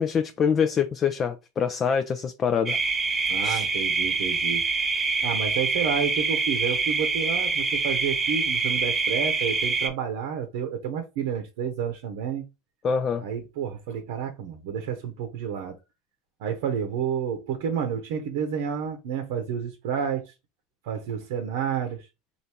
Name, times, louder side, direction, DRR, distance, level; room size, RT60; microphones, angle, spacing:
voice 1, 0.0-2.8 3.4-3.6 12.8-13.3, left 6 dB, 35° left, 0.5 m, -25 dB
sound 1, 2.7-9.9, right 4 dB, 25° right, 1.2 m, -25 dB
voice 2, 3.3-4.7 5.2-12.5 13.2-15.8 16.4-20.3 20.8-22.1, right 7 dB, 70° right, 0.8 m, -30 dB
3.4 x 2.6 x 4.2 m
hypercardioid pair, 90°, 0 cm